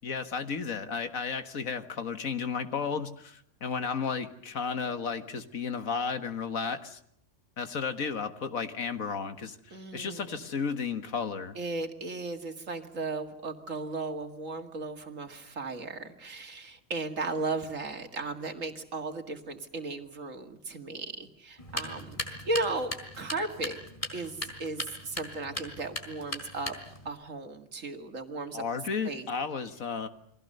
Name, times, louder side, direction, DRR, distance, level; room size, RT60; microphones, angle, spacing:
voice 1, 0.0-7.0 7.6-11.6 28.5-30.1, left 5 dB, 80° left, 9 dB, 2.0 m, -33 dB
voice 2, 9.7-10.5 11.6-23.8 24.1-26.8 27.0-28.6 29.0-29.3, right 3 dB, 70° right, 6 dB, 2.5 m, -36 dB
sound 1, 21.6-27.1, left 1 dB, 25° left, 3.9 m, -39 dB
29.5 x 22.5 x 6.7 m, 0.68 s
omnidirectional pair, 1.4 m